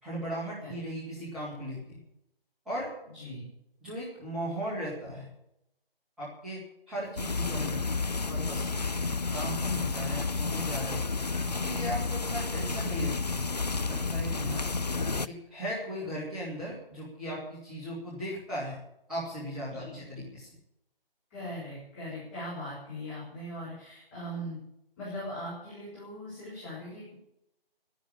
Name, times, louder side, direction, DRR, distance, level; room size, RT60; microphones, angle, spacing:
voice 1, 0.0-2.0 2.6-2.9 3.8-5.3 6.2-6.6 6.9-7.8 8.3-8.9 9.3-11.0 11.4-13.5 13.8-14.7 15.3-18.8 19.1-20.5, equal, ahead, -11 dB, 2.5 m, -37 dB
voice 2, 3.1-3.5 9.6-9.9 14.4-14.8 19.7-20.0 21.3-24.6 25.0-27.1, left 1 dB, 15° left, -10 dB, 6.3 m, -40 dB
sound 1, 7.2-15.3, left 4 dB, 45° left, 0.6 m, -31 dB
12.5 x 10.5 x 8.7 m, 0.83 s
figure-of-eight pair, 155°, 30 cm